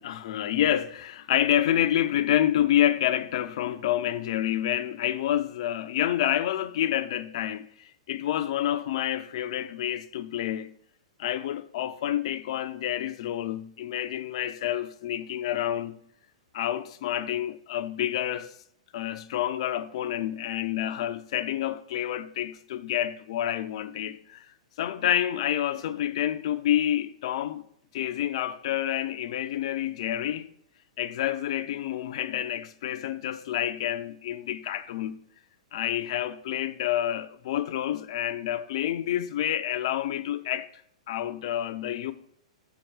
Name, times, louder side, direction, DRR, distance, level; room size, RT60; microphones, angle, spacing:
voice 1, 0.0-10.7 11.2-16.0 16.5-18.5 18.9-24.5 24.8-27.6 27.9-30.5 31.0-35.2 35.7-40.7 41.1-42.1, left 11 dB, 55° left, 0.5 m, -28 dB
6.9 x 4.6 x 6.3 m
hypercardioid pair, 110°, 4 cm